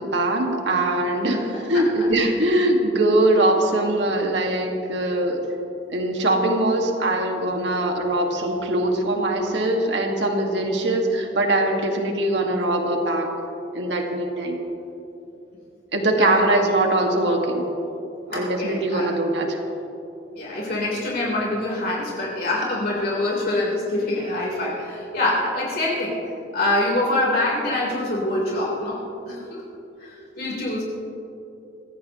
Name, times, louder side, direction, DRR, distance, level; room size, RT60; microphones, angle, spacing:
voice 1, 0.0-5.4 5.9-13.3 13.7-14.6 15.9-17.7 18.3-19.6, right 1 dB, 70° right, 2 dB, 2.0 m, -22 dB
voice 2, 18.3-19.1 20.4-26.2 26.5-29.6 30.4-30.8, left 1 dB, 55° left, -5 dB, 3.9 m, -25 dB
25.0 x 16.0 x 3.1 m, 2.9 s
head